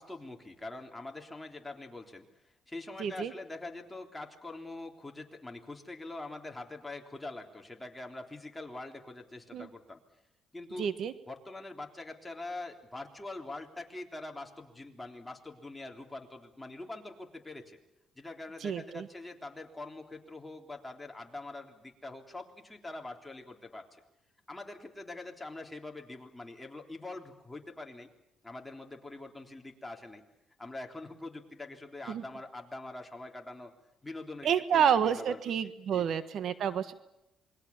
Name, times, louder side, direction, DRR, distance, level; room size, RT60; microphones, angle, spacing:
voice 1, 0.0-2.3 2.7-10.0 10.5-10.9 11.3-17.8 18.2-24.0 24.5-28.1 28.4-30.2 30.6-33.7 34.0-36.2, left 2 dB, 10° left, 2 dB, 3.6 m, -44 dB
voice 2, 3.0-3.3 9.5-9.7 10.8-11.1 18.6-19.1 32.1-32.2 34.4-36.9, right 8 dB, 65° right, 12 dB, 1.4 m, -29 dB
28.0 x 22.5 x 7.3 m, 0.90 s
cardioid pair, 100°, 0 cm